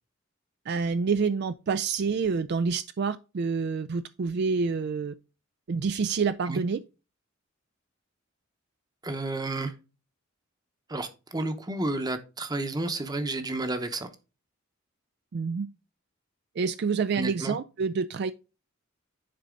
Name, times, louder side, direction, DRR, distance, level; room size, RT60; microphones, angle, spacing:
voice 1, 0.7-5.1 5.7-6.8 15.3-15.7 16.6-18.3, right 5 dB, 50° right, 0.4 m, -27 dB
voice 2, 9.0-9.7 10.9-14.1 17.1-17.5, right 2 dB, 20° right, 0.9 m, -31 dB
10.5 x 4.0 x 3.8 m
head